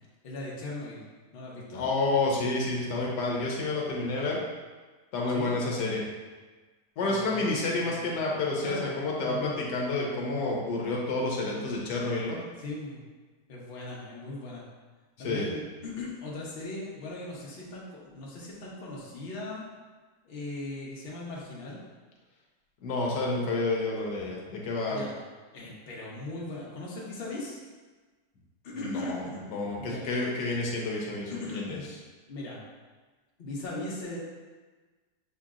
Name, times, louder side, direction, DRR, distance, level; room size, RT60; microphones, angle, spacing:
voice 1, 0.2-1.0 1.3-1.9 3.9-4.3 5.3-5.6 7.0-8.3 8.6-9.6 12.6-13.0 13.5-14.6 15.2-19.7 20.2-21.8 24.9-25.1 25.5-27.6 28.6-29.5 29.8-30.2 31.3-31.8 32.3-32.6 33.4-34.2, left 2 dB, 45° left, -5 dB, 0.9 m, -39 dB
voice 2, 1.7-4.4 5.1-6.0 7.0-12.4 15.2-15.5 22.8-25.0 28.7-29.2 29.5-31.8, left 2 dB, 85° left, -2 dB, 1.4 m, -29 dB
6.5 x 2.8 x 2.4 m, 1.3 s
omnidirectional pair, 1.8 m